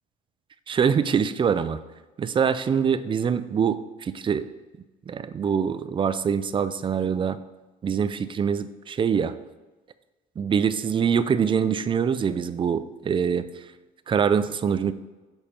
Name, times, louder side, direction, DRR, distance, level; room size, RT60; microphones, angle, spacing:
voice 1, 0.7-1.8 2.2-4.5 5.1-7.4 7.8-9.3 10.4-13.5 14.1-14.9, right 7 dB, 30° right, 13 dB, 0.4 m, -24 dB
7.2 x 4.3 x 5.2 m, 1.2 s
cardioid pair, 110°, 17 cm